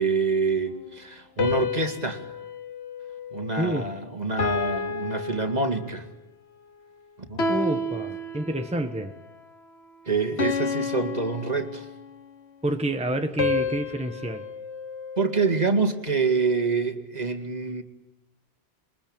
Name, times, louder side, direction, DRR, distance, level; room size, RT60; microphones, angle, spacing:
voice 1, 0.0-2.2 3.3-6.1 7.3-7.5 10.1-11.8 15.2-17.8, right 4 dB, 40° right, 6 dB, 2.3 m, -26 dB
sound 1, 1.4-3.9 4.4-6.1 7.4-8.9 10.4-12.3 13.4-15.7, left 3 dB, 80° left, 1.8 m, -31 dB
voice 2, 3.6-3.9 7.5-9.1 12.6-14.4, right 1 dB, 5° right, 6 dB, 1.4 m, -28 dB
28.0 x 22.5 x 8.9 m, 1.0 s
omnidirectional pair, 1.1 m